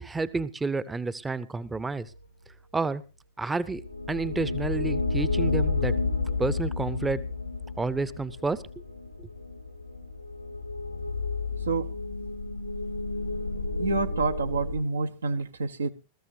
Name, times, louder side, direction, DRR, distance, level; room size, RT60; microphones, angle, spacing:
voice 1, 0.0-2.1 2.7-3.0 3.4-3.8 4.1-5.9 6.4-7.2 7.8-8.6 9.2-9.3, right 3 dB, 10° right, 18 dB, 0.7 m, -30 dB
sound 1, 3.6-14.7, left 3 dB, 85° left, 3.1 m, -31 dB
voice 2, 13.8-15.9, right 3 dB, 75° right, 8 dB, 0.9 m, -28 dB
21.0 x 14.0 x 2.7 m, 0.30 s
figure-of-eight pair, 90°, 0 cm